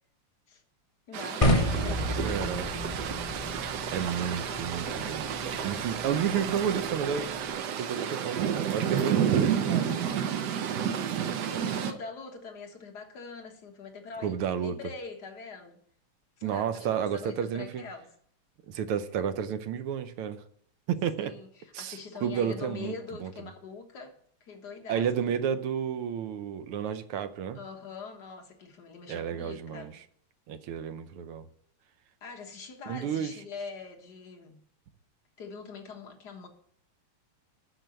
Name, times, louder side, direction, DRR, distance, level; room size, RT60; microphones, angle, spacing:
voice 1, 1.1-2.5 8.9-10.3 11.5-15.8 16.4-18.1 21.2-24.2 24.4-25.1 25.4-25.5 27.5-30.0 32.2-34.6 35.4-36.5, left 4 dB, 50° left, 1.9 m, -43 dB
sound 1, 1.1-11.9, right 8 dB, 65° right, 1.1 m, -30 dB
sound 2, 1.4-7.5, equal, 30° left, 0.6 m, -32 dB
voice 2, 2.2-2.7 3.9-5.3 5.6-7.3 7.8-8.4 8.7-9.2 14.2-14.8 16.4-17.8 18.7-20.4 20.9-21.3 21.7-22.9 23.2-23.3 24.9-27.6 29.1-29.9 30.5-31.5 32.9-33.3, right 8 dB, 80° right, 1.7 m, -31 dB
9.0 x 6.1 x 7.7 m
omnidirectional pair, 2.4 m